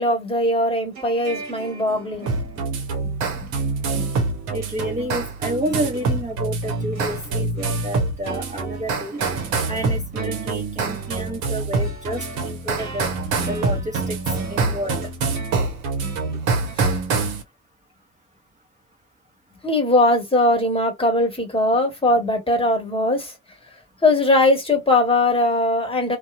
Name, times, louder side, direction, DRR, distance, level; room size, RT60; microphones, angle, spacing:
voice 1, 0.0-2.3 3.0-3.1 16.8-17.0 19.6-23.3 24.0-26.2, left 2 dB, 15° left, 1.4 m, -20 dB
sound 1, 0.9-16.8, right 4 dB, 45° right, 1.3 m, -40 dB
sound 2, 2.3-17.4, right 3 dB, 70° right, 0.9 m, -25 dB
voice 2, 4.5-9.2 9.7-13.1 13.5-14.2 14.5-15.1 25.8-25.9, equal, 20° right, 0.9 m, -30 dB
2.6 x 2.3 x 2.5 m
hypercardioid pair, 50°, 36 cm